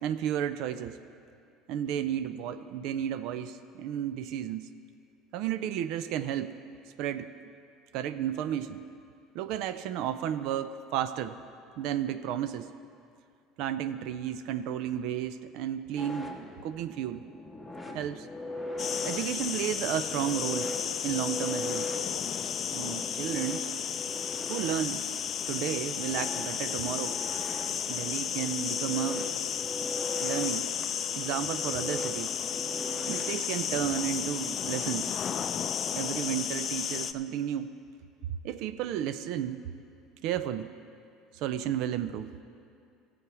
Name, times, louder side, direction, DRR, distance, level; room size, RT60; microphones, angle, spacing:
voice 1, 0.0-1.0 1.7-4.7 5.3-6.5 7.0-7.3 7.9-8.8 9.3-11.3 11.8-12.7 13.6-17.2 17.9-18.3 19.0-20.7 21.0-21.9 22.7-23.7 24.5-25.1 25.5-27.2 27.9-29.3 30.2-30.6 31.1-32.3 33.1-35.1 35.9-37.7 38.4-39.6 40.2-40.7 41.3-42.3, right 10 dB, 70° right, 12 dB, 0.4 m, -32 dB
sound 1, 16.0-35.5, left 1 dB, ahead, 1.5 m, -41 dB
sound 2, 18.8-37.1, left 8 dB, 40° left, 0.4 m, -33 dB
13.5 x 7.9 x 4.8 m, 2.4 s
supercardioid pair, 100°, 0 cm